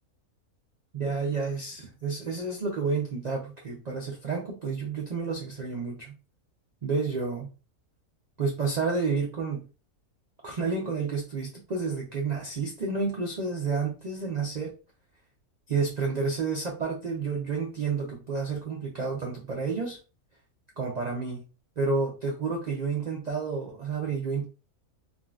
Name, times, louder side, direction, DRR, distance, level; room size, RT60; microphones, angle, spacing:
voice 1, 0.9-6.1 6.8-7.5 8.4-9.7 10.4-14.7 15.7-20.0 20.8-21.4 21.8-24.4, right 4 dB, 80° right, -2 dB, 0.3 m, -30 dB
3.6 x 2.3 x 2.3 m, 0.32 s
omnidirectional pair, 1.6 m